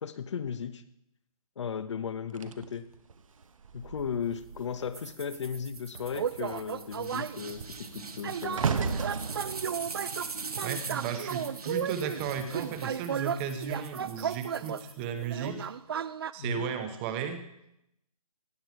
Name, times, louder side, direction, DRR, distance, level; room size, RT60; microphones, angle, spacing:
voice 1, 0.0-0.8 1.6-2.8 3.7-9.0 16.4-16.6, left 7 dB, 50° left, 13 dB, 0.7 m, -36 dB
sound 1, 2.3-5.1 5.4-5.7 6.1-11.4 12.1-12.4, right 5 dB, 60° right, 1.0 m, -36 dB
sound 2, 4.9-15.5, right 4 dB, 80° right, 1.6 m, -42 dB
sound 3, 6.1-7.4 8.2-14.9 15.2-16.3, right 8 dB, 40° right, 0.4 m, -34 dB
voice 2, 10.6-15.7 16.3-17.4, right 7 dB, 20° right, 8 dB, 0.8 m, -35 dB
17.0 x 8.8 x 4.7 m, 0.83 s
hypercardioid pair, 150°, 19 cm